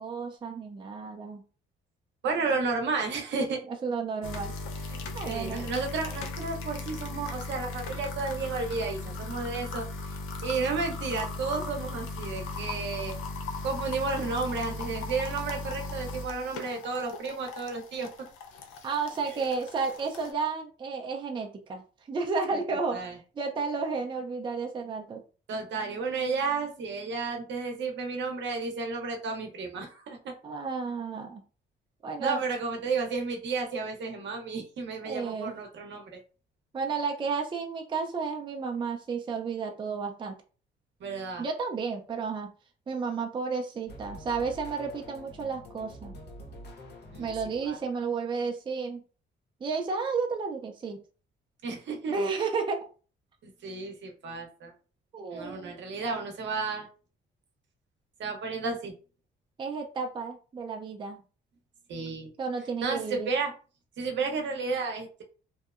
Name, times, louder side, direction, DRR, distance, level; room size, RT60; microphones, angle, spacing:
voice 1, 0.0-1.4 3.8-4.6 5.1-5.7 18.8-21.8 22.1-23.0 23.4-25.2 30.4-31.4 32.0-32.4 35.0-35.6 36.7-40.4 41.4-42.5 42.9-46.2 47.2-49.0 49.6-51.0 52.1-52.9 55.1-55.7 59.6-61.2 62.4-63.3, right 5 dB, 25° right, 2 dB, 0.4 m, -32 dB
voice 2, 2.2-3.6 4.9-5.0 5.2-10.2 10.4-13.1 13.6-18.1 19.3-19.4 22.5-22.6 22.9-23.2 25.5-30.3 32.2-36.2 41.0-41.5 47.1-47.3 47.6-47.8 51.6-52.1 53.4-54.7 55.3-56.9 58.2-58.9 61.9-62.3 62.8-63.5 64.0-65.2, right 4 dB, 65° right, 2 dB, 0.7 m, -32 dB
sound 1, 4.2-20.3, left 3 dB, 90° left, 0.4 m, -38 dB
sound 2, 43.9-48.0, equal, 55° left, 0.7 m, -46 dB
2.7 x 2.1 x 2.4 m, 0.37 s
cardioid pair, 90°, 20 cm